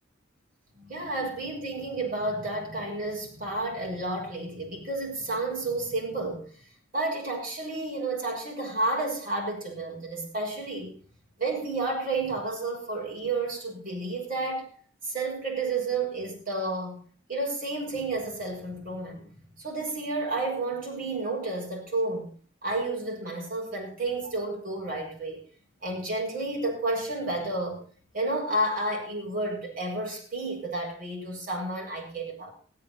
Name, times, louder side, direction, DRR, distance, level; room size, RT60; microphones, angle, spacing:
voice 1, 0.7-6.5 6.9-10.9 11.4-14.7 15.0-17.0 17.3-19.3 19.6-22.3 22.6-25.4 25.8-27.8 28.1-32.5, right 2 dB, 45° right, -2 dB, 5.9 m, -31 dB
16.0 x 9.2 x 5.6 m, 0.43 s
head